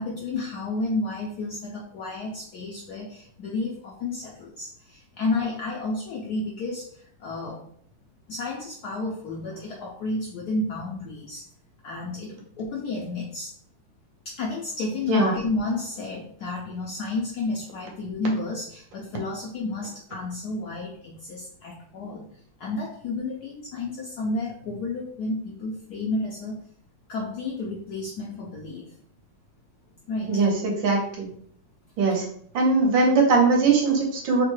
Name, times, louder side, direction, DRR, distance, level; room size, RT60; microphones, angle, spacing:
voice 1, 0.0-7.6 8.3-11.4 11.8-13.5 14.2-22.3 22.6-26.6 27.1-28.9 30.1-30.4 32.0-32.1, left 2 dB, 75° left, -3 dB, 0.9 m, -31 dB
voice 2, 30.3-31.3 32.0-32.2 32.5-34.4, right 3 dB, 70° right, 0 dB, 1.5 m, -20 dB
3.6 x 2.1 x 3.0 m, 0.62 s
omnidirectional pair, 2.2 m